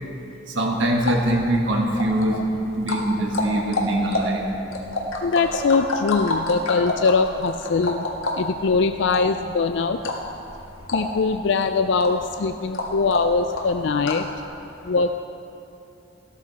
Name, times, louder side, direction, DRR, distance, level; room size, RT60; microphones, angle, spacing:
voice 1, 0.5-2.5 2.8-4.5, right 1 dB, 65° right, 1 dB, 1.6 m, -23 dB
sound 1, 0.8-14.4, left 2 dB, 85° left, 1.6 m, -30 dB
voice 2, 5.2-8.1 8.3-10.0 10.9-14.3 14.8-15.2, left 4 dB, 60° left, 8 dB, 0.4 m, -22 dB
15.0 x 12.5 x 4.2 m, 2.8 s
head